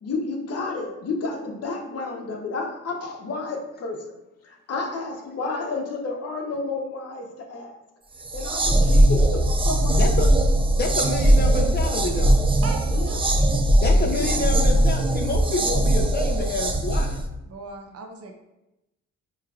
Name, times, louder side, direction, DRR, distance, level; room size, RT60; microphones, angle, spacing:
voice 1, 0.0-4.0 4.4-7.7 8.3-10.0 10.9-11.1 12.9-13.2 13.9-14.0, left 3 dB, 55° left, 1 dB, 0.9 m, -31 dB
sound 1, 8.2-17.3, right 1 dB, 20° right, 0.3 m, -20 dB
voice 2, 10.0-10.3 10.8-12.4 13.8-17.2, left 3 dB, 35° left, 2 dB, 0.5 m, -28 dB
voice 3, 12.6-13.5 13.9-14.4 17.5-18.3, right 3 dB, 55° right, 3 dB, 0.7 m, -38 dB
4.6 x 3.1 x 2.4 m, 0.92 s
cardioid pair, 90°, 30 cm